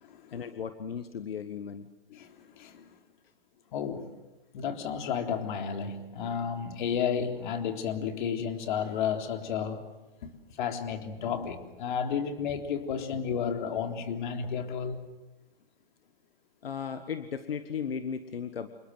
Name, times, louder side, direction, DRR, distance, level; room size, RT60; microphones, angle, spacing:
voice 1, 0.3-1.9 16.6-18.7, left 7 dB, 85° left, 9 dB, 1.7 m, -36 dB
voice 2, 2.1-2.9 3.7-4.1 4.5-9.8 10.2-10.3 10.6-15.0, left 7 dB, 55° left, 5 dB, 3.7 m, -32 dB
27.5 x 21.0 x 7.9 m, 1.0 s
hypercardioid pair, 140°, 29 cm